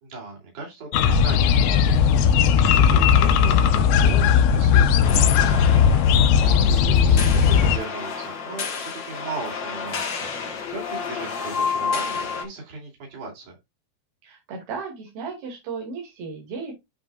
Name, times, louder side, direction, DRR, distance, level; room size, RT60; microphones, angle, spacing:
voice 1, 0.0-5.9 6.1-13.5, right 3 dB, 60° right, -2 dB, 4.4 m, -38 dB
sound 1, 0.9-7.8, left 7 dB, 85° left, 2.6 m, -17 dB
sound 2, 5.0-12.4, left 5 dB, 50° left, 1.4 m, -30 dB
voice 2, 14.2-16.7, right 5 dB, 85° right, 0 dB, 4.2 m, -35 dB
9.6 x 5.4 x 2.4 m, 0.20 s
omnidirectional pair, 4.2 m